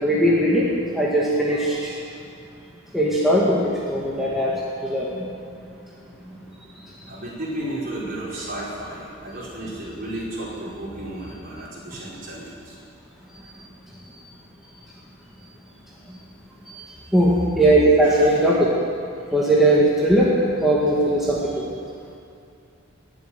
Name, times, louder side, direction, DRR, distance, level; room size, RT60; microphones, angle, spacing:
voice 1, 0.0-0.7 0.9-2.0 2.9-3.6 3.9-5.3 16.7-16.8 17.1-18.7 19.3-21.6, right 1 dB, ahead, -7 dB, 2.0 m, -19 dB
voice 2, 7.1-12.8 18.0-18.3, right 1 dB, 45° right, -6 dB, 5.1 m, -33 dB
19.5 x 7.8 x 9.4 m, 2.5 s
head